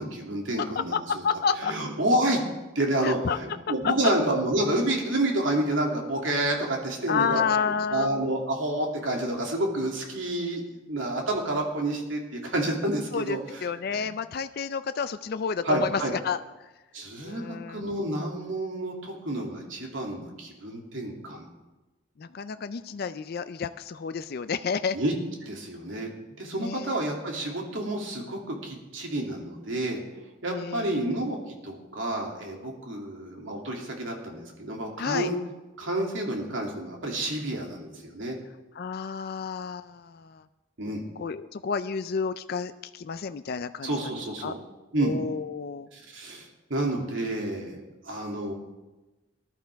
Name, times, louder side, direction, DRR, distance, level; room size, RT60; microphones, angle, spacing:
voice 1, 0.0-1.2 1.6-2.4 2.7-14.1 15.6-16.1 16.9-21.5 24.9-25.1 25.4-26.1 26.4-30.0 30.4-35.4 35.8-38.4 40.8-41.0 43.8-44.6 44.9-45.1 45.9-48.5, right 1 dB, 70° right, 0 dB, 2.6 m, -29 dB
voice 2, 1.2-1.7 3.0-3.4 3.8-3.9 7.1-8.1 13.1-16.4 17.2-17.8 22.2-25.0 26.6-27.0 30.5-31.1 35.0-35.3 38.8-40.4 41.2-44.1 44.4-44.5 45.0-45.9, left 6 dB, 50° left, 11 dB, 0.4 m, -30 dB
19.0 x 12.0 x 3.5 m, 1.1 s
head